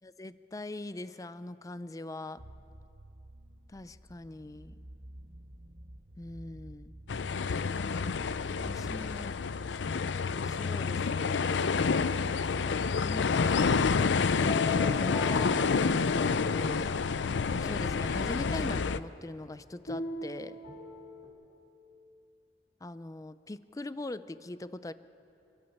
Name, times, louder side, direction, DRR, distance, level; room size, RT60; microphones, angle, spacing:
voice 1, 0.0-2.4 3.7-4.8 6.2-7.0 8.6-9.4 10.4-11.9 13.0-13.9 15.0-16.9 17.6-20.6 22.8-24.9, left 2 dB, 20° left, 14 dB, 0.5 m, -41 dB
sound 1, 2.4-9.9, right 1 dB, 40° right, 1.2 m, -51 dB
sound 2, 7.1-19.0, left 5 dB, 80° left, 0.5 m, -28 dB
sound 3, 14.4-16.5 17.0-18.1 19.9-21.3, left 4 dB, 55° left, 3.2 m, -39 dB
29.5 x 12.5 x 7.1 m, 2.9 s
head